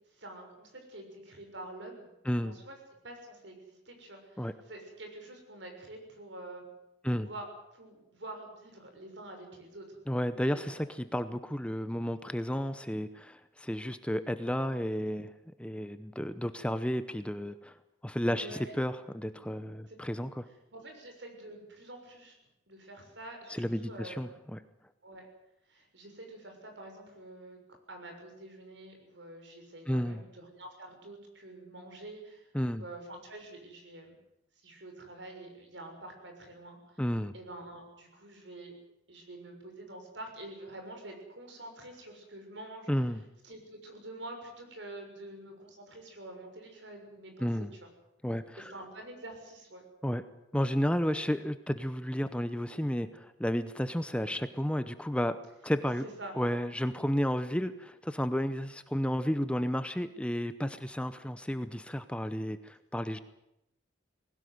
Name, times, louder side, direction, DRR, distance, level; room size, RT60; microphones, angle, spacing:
voice 1, 0.1-2.8 3.0-6.7 7.1-7.5 7.7-10.0 10.5-10.8 18.4-18.7 19.9-20.0 20.7-22.4 22.7-24.3 25.0-25.3 25.7-27.6 27.9-32.5 32.7-34.2 34.6-37.0 37.3-38.7 39.1-42.9 43.4-47.5 48.7-49.8 56.0-56.3, right 1 dB, 70° right, 4 dB, 6.4 m, -47 dB
voice 2, 2.2-2.6 4.4-4.5 7.0-7.3 10.1-15.3 15.6-17.8 18.0-20.5 23.5-24.6 29.9-30.2 32.5-32.8 37.0-37.3 42.9-43.2 47.4-47.7 48.2-48.7 50.0-50.2 50.5-56.1 56.4-63.2, equal, 5° left, 12 dB, 0.7 m, -32 dB
20.0 x 17.5 x 9.5 m, 0.86 s
head